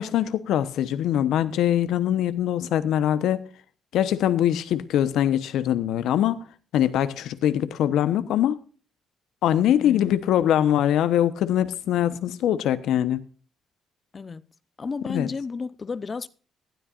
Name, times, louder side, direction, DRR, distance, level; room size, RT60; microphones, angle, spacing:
voice 1, 0.0-3.4 3.9-6.5 6.7-8.6 9.4-13.2 15.1-15.3, left 11 dB, 80° left, 1.0 m, -23 dB
voice 2, 9.8-10.2 14.1-14.5 14.8-16.3, left 4 dB, 35° left, 0.8 m, -32 dB
18.5 x 12.5 x 2.5 m
cardioid pair, 90°, 0 cm